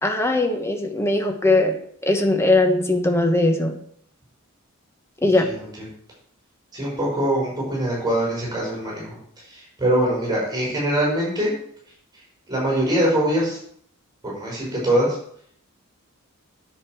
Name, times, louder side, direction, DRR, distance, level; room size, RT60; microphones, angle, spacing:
voice 1, 0.0-1.8 2.0-3.7 5.2-5.4, left 2 dB, 10° left, 4 dB, 1.3 m, -20 dB
voice 2, 5.2-5.7 6.7-9.1 9.5-11.6 12.5-13.6 14.3-15.2, right 1 dB, 20° right, -5 dB, 5.1 m, -23 dB
10.0 x 7.7 x 4.9 m, 0.64 s
head